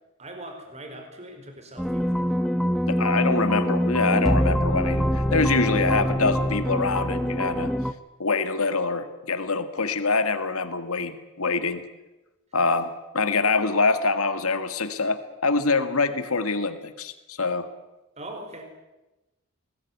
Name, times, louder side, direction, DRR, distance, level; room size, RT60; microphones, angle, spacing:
voice 1, 0.2-2.3 18.2-18.6, right 1 dB, 30° right, 5 dB, 4.7 m, -41 dB
sound 1, 1.8-7.9, equal, ahead, 0.7 m, -24 dB
voice 2, 2.9-7.7 8.2-11.8 12.5-17.7, left 3 dB, 90° left, 10 dB, 1.8 m, -25 dB
22.5 x 19.5 x 9.4 m, 1.0 s
head